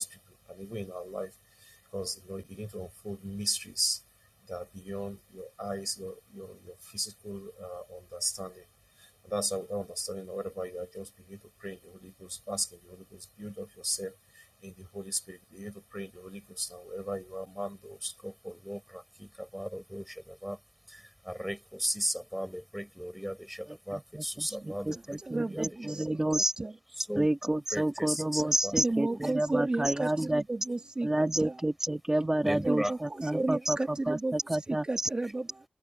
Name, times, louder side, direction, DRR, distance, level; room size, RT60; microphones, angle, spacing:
voice 1, 0.0-4.0 4.4-8.7 9.0-20.6 20.9-25.7 27.0-27.3 27.7-28.8 29.1-29.2 29.5-29.6 32.4-32.9 33.3-33.5, equal, 5° right, 7.3 m, -37 dB
voice 2, 23.7-26.5 27.2-30.4 31.0-35.1, right 1 dB, 20° right, 2.3 m, -30 dB
voice 3, 24.5-26.7 28.8-31.6 32.6-35.6, right 2 dB, 40° right, 2.3 m, -34 dB
open air
wide cardioid pair, 70°, 3 cm